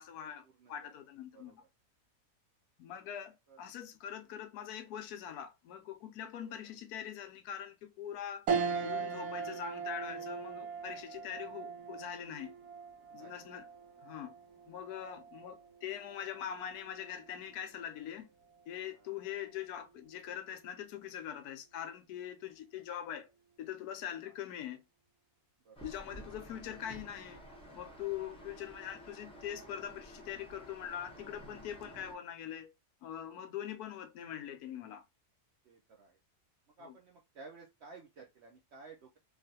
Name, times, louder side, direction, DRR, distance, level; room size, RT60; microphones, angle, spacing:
voice 1, 0.0-1.6 2.8-8.5 8.8-12.5 13.1-13.7 14.0-14.3 14.7-18.3 18.7-23.3 23.6-24.8 25.8-27.5 27.7-32.7 33.0-35.0 36.8-37.0, left 10 dB, 80° left, 1.1 m, -43 dB
sound 1, 8.5-18.1 18.6-18.7 20.0-20.4, right 5 dB, 90° right, 1.2 m, -40 dB
voice 2, 25.7-26.0 28.2-28.3 35.7-36.1 36.8-39.2, right 4 dB, 70° right, 0.6 m, -54 dB
sound 2, 25.8-32.2, right 1 dB, 5° left, 0.7 m, -52 dB
3.2 x 2.4 x 2.6 m
omnidirectional pair, 1.7 m